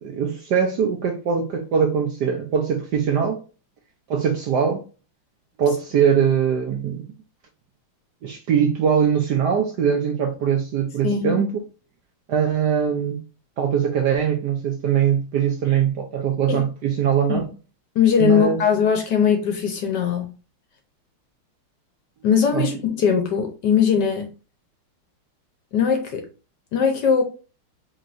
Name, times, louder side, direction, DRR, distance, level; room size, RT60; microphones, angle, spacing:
voice 1, 0.0-3.4 4.1-4.8 5.6-7.1 8.2-11.6 12.3-13.2 13.6-17.5 18.2-18.6 22.5-22.7, right 7 dB, 70° right, 1.0 m, -21 dB
voice 2, 11.0-11.4 16.5-16.6 17.3-17.5 17.9-20.3 22.2-24.3 25.7-26.2 26.7-27.2, left 7 dB, 65° left, 1.2 m, -20 dB
5.2 x 3.0 x 2.6 m
omnidirectional pair, 2.4 m